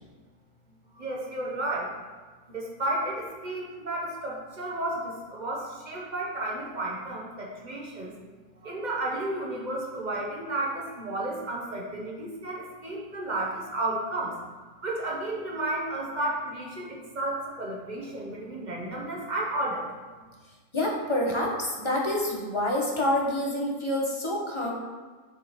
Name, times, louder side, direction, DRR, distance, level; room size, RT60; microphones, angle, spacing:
voice 1, 1.0-1.9 2.5-8.1 8.6-14.4 14.8-19.9, right 1 dB, 30° right, -2 dB, 1.2 m, -32 dB
voice 2, 20.7-24.7, left 1 dB, 20° left, -2 dB, 1.0 m, -27 dB
6.3 x 4.9 x 4.4 m, 1.4 s
omnidirectional pair, 1.6 m